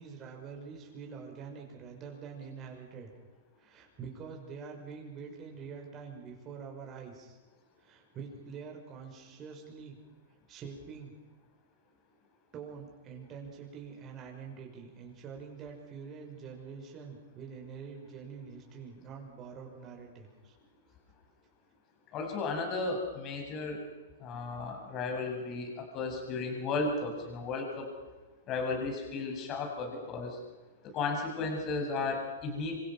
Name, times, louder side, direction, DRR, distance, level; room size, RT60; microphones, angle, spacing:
voice 1, 0.0-3.1 3.6-7.4 7.8-10.0 10.5-11.1 12.5-20.5, right 6 dB, 30° right, 1 dB, 6.0 m, -45 dB
voice 2, 22.1-23.8 24.2-27.9 28.5-30.4 30.9-32.8, left 3 dB, 35° left, 2 dB, 7.0 m, -34 dB
27.5 x 26.0 x 5.9 m, 1.2 s
figure-of-eight pair, 105°, 0 cm